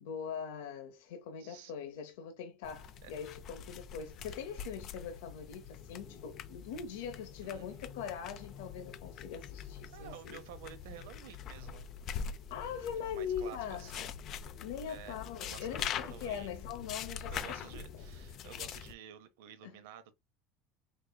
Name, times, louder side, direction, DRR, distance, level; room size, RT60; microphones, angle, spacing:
voice 1, 0.0-10.4 12.5-13.9 14.6-17.8 19.6-19.8, left 7 dB, 90° left, 0.8 m, -42 dB
voice 2, 1.4-1.7 3.0-3.1 7.4-7.7 9.9-11.9 13.0-14.1 14.9-16.5 17.3-20.1, right 10 dB, 85° right, 0.8 m, -51 dB
sound 1, 2.6-18.9, left 7 dB, 50° left, 0.5 m, -44 dB
4.9 x 3.4 x 2.3 m
supercardioid pair, 125°, 0 cm